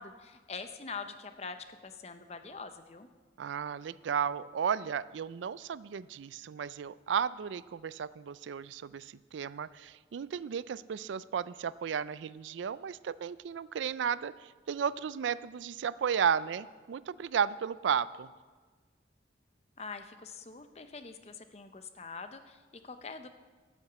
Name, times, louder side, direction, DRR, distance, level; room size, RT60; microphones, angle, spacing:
voice 1, 0.0-1.6 1.8-3.1 19.8-23.3, left 4 dB, 35° left, 9 dB, 0.7 m, -44 dB
voice 2, 3.4-18.3, right 7 dB, 90° right, 18 dB, 0.4 m, -34 dB
8.9 x 8.6 x 8.0 m, 1.4 s
head